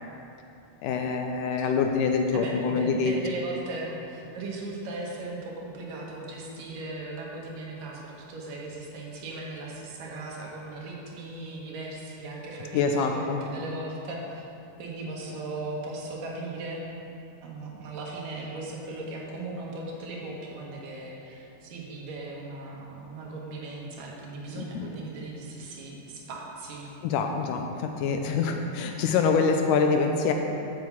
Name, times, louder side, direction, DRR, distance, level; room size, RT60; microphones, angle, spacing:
voice 1, 0.8-3.2 12.7-13.5 24.6-24.9 27.0-30.3, left 5 dB, 80° left, 4 dB, 2.0 m, -25 dB
voice 2, 2.3-14.5 14.8-16.8 17.4-26.9, right 2 dB, 80° right, -2 dB, 2.8 m, -38 dB
7.4 x 5.9 x 7.2 m, 2.8 s
omnidirectional pair, 3.9 m